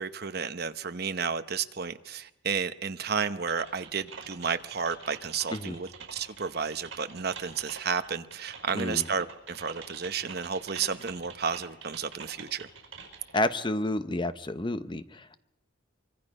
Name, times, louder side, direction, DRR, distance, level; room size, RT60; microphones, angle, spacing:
voice 1, 0.0-12.7, right 6 dB, 50° right, 10 dB, 0.9 m, -32 dB
Typing, 3.5-13.4, right 5 dB, 70° right, 5.1 m, -46 dB
voice 2, 8.7-9.1 13.3-15.4, left 1 dB, 25° left, 11 dB, 0.8 m, -30 dB
24.5 x 24.0 x 5.4 m, 0.86 s
head